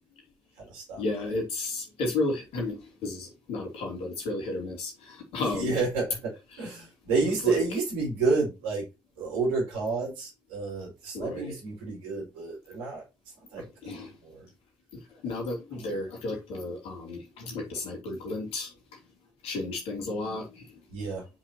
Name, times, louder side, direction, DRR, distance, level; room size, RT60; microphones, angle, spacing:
voice 1, 1.0-5.8 6.5-6.7 7.2-7.6 11.1-11.6 13.6-14.1 14.9-18.7 19.4-20.8, left 2 dB, 60° left, 3.0 m, -33 dB
voice 2, 5.6-6.3 6.6-8.8 9.2-13.0 13.5-14.0 14.2-14.5 20.9-21.2, right 4 dB, 70° right, 4.6 m, -30 dB
9.0 x 5.8 x 2.9 m
figure-of-eight pair, 40°, 11 cm